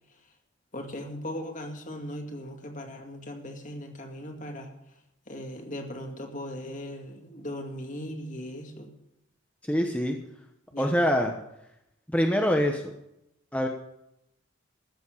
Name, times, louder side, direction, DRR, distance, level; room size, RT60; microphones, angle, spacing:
voice 1, 0.7-5.0 5.3-8.9 10.7-11.0, left 1 dB, 40° left, 3 dB, 2.3 m, -38 dB
voice 2, 9.6-10.2 10.8-11.3 12.1-12.9 13.5-13.7, equal, 5° left, 3 dB, 1.0 m, -24 dB
14.0 x 7.3 x 8.4 m, 0.82 s
head